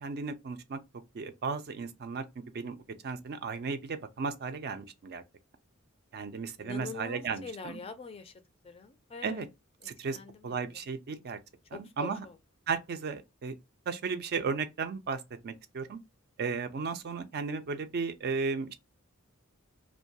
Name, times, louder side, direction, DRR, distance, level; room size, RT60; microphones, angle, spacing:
voice 1, 0.0-0.8 1.1-2.2 2.5-2.7 3.0-5.2 6.1-7.8 9.2-9.5 9.8-10.2 10.4-11.4 11.7-12.2 12.7-13.5 13.9-16.0 16.4-18.7, right 5 dB, 50° right, 0.4 m, -35 dB
voice 2, 6.6-8.3 8.6-9.4 10.1-10.7 11.7-12.3, left 4 dB, 25° left, 0.4 m, -44 dB
2.2 x 2.2 x 2.6 m
head